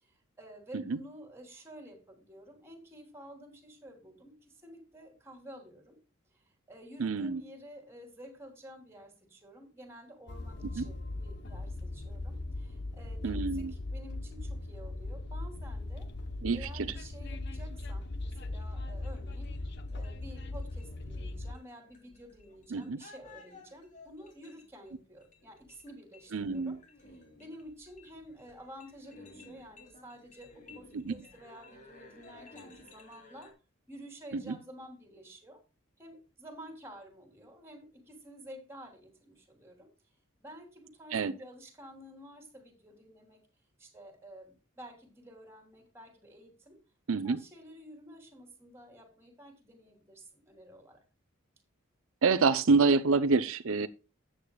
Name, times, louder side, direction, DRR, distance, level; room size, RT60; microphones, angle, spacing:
voice 1, 0.1-6.0 6.3-16.1 16.5-19.5 19.9-26.8 27.1-33.5 33.9-35.6 36.0-39.9 40.4-43.4 43.8-46.8 47.2-51.0, equal, 10° right, 3.2 m, -51 dB
voice 2, 7.0-7.4 10.7-10.9 13.2-13.7 16.4-16.8 22.7-23.0 26.3-26.7 30.9-31.1 34.3-34.6 41.1-41.3 47.1-47.4 52.2-53.9, right 4 dB, 75° right, 0.7 m, -27 dB
Train, 10.3-21.5, left 2 dB, 55° left, 0.9 m, -39 dB
sound 1, 18.5-33.5, left 2 dB, 35° left, 3.4 m, -56 dB
13.5 x 9.0 x 2.3 m
head